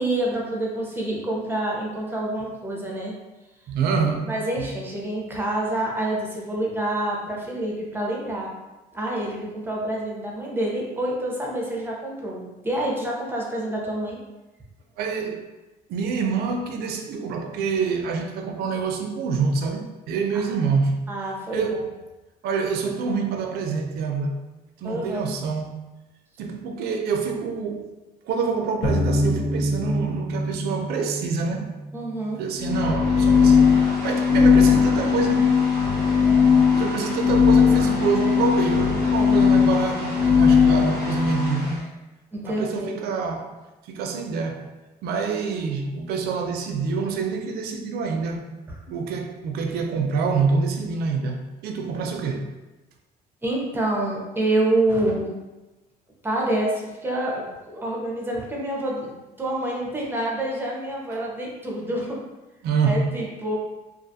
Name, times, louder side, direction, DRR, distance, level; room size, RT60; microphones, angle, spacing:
voice 1, 0.0-3.1 4.3-8.5 8.9-14.2 20.3-20.6 21.1-21.7 24.8-25.2 31.9-32.4 42.3-43.0 48.7-48.8 53.4-55.3 56.2-59.1 59.4-62.2 62.8-63.6, right 1 dB, 15° right, -3 dB, 0.6 m, -27 dB
voice 2, 3.7-4.3 4.6-4.7 15.0-15.4 15.9-21.0 21.5-22.0 22.4-24.5 24.8-25.8 26.4-27.9 28.3-31.7 32.4-35.6 35.9-41.8 42.5-43.5 43.9-44.7 45.0-48.4 48.9-52.5 61.1-61.2 62.6-63.1, right 5 dB, 70° right, 3 dB, 0.4 m, -26 dB
sound 1, 28.8-31.9, equal, 35° left, 0.6 m, -26 dB
sound 2, 32.6-41.7, left 6 dB, 80° left, 1.1 m, -18 dB
2.4 x 2.3 x 2.6 m, 1.1 s
cardioid pair, 110°, 17 cm